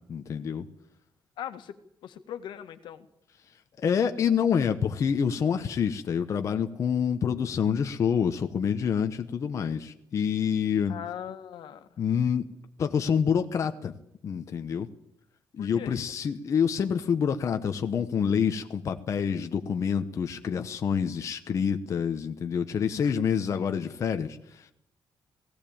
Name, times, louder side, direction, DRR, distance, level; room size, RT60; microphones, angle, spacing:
voice 1, 0.1-0.7 3.8-11.0 12.0-12.5 12.8-13.9 14.2-14.9 15.5-24.7, left 7 dB, 40° left, 7 dB, 1.0 m, -27 dB
voice 2, 1.4-3.1 10.9-12.0 15.6-16.0 23.0-23.1, left 10 dB, 75° left, 9 dB, 1.7 m, -40 dB
17.5 x 17.5 x 8.7 m, 0.75 s
cardioid pair, 180°, 8 cm